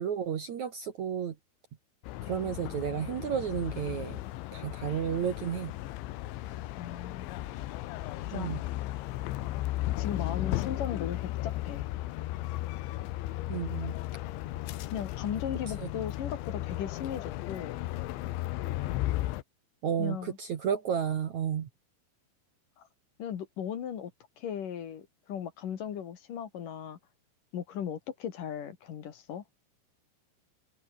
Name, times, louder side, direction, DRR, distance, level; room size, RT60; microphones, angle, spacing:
voice 1, 0.0-1.3 2.2-4.2 4.5-5.7 8.3-8.6 13.5-13.9 15.8-15.9 19.8-21.7, right 8 dB, 60° right, 1.9 m, -32 dB
sound 1, 2.0-19.4, left 16 dB, 75° left, 3.4 m, -35 dB
voice 2, 6.8-7.4 8.3-8.6 10.0-11.9 14.9-17.8 20.0-20.4 22.8-22.9 23.2-24.1 24.4-27.0 27.5-29.4, left 9 dB, 55° left, 3.0 m, -37 dB
omnidirectional pair, 5.6 m